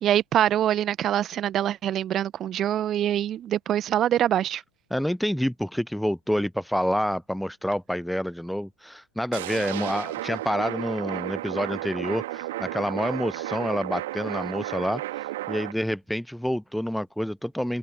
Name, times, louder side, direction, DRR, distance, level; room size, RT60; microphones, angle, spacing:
voice 1, 0.0-4.6, right 11 dB, 30° right, 1.3 m, -24 dB
voice 2, 4.9-17.8, equal, ahead, 0.6 m, -28 dB
sound 1, 9.3-15.7, right 16 dB, 55° right, 2.4 m, -33 dB
figure-of-eight pair, 90°, 0 cm